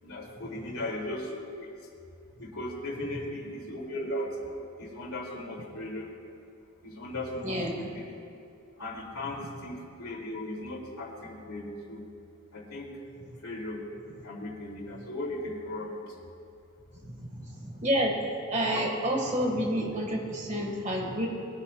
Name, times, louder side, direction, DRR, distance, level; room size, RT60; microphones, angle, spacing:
voice 1, 0.0-1.7 2.4-6.1 6.8-8.2 8.8-12.1 12.5-13.0 13.4-13.8 14.2-16.1, left 1 dB, 85° left, -2 dB, 2.8 m, -37 dB
voice 2, 17.0-18.2 18.5-21.3, equal, 35° right, 1 dB, 1.6 m, -29 dB
22.0 x 9.7 x 2.3 m, 2.6 s
head